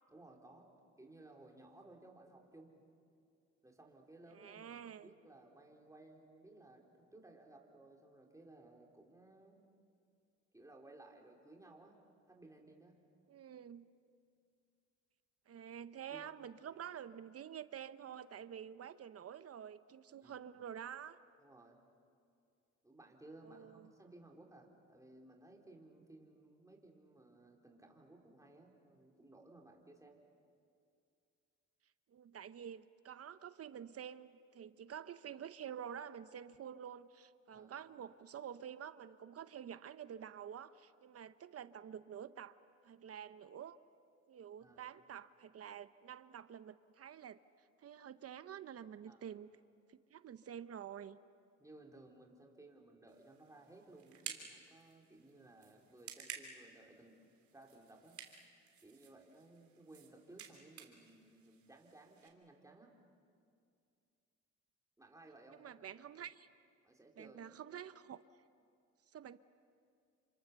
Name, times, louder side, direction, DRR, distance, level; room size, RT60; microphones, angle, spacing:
voice 1, 0.1-0.7 1.0-2.8 3.6-9.6 10.5-12.0 12.3-13.0 16.1-16.3 20.2-20.5 21.4-21.8 22.8-30.2 37.5-37.7 44.6-44.9 49.1-49.3 51.6-57.3 57.5-58.2 58.8-62.9 65.0-65.8 66.1-66.3 66.8-67.8, right 2 dB, 10° right, 0 dB, 4.2 m, -59 dB
voice 2, 4.3-5.1 13.3-13.9 15.5-21.2 23.4-23.9 32.1-42.6 42.8-43.8 44.3-47.4 47.8-49.5 49.9-51.2 65.6-66.5 67.2-68.2 69.1-69.4, right 9 dB, 50° right, 13 dB, 0.8 m, -49 dB
sound 1, 53.1-62.3, right 7 dB, 70° right, 3.3 m, -54 dB
29.0 x 25.5 x 7.0 m, 2.4 s
cardioid pair, 90°, 30 cm